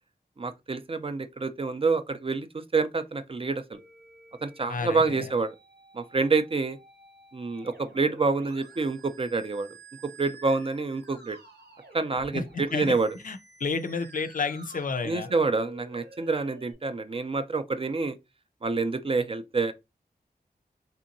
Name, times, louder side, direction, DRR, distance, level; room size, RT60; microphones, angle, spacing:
voice 1, 0.4-3.8 4.4-5.6 5.9-6.8 7.3-9.7 10.0-11.4 11.9-13.1 15.0-18.2 18.6-19.7, right 4 dB, 35° right, 0.4 m, -27 dB
Musical instrument, 3.7-16.7, right 2 dB, 85° right, 1.0 m, -51 dB
voice 2, 4.7-5.3 12.3-13.0 13.2-15.3, left 4 dB, 55° left, 0.4 m, -31 dB
3.4 x 2.8 x 2.6 m
wide cardioid pair, 95°, 17 cm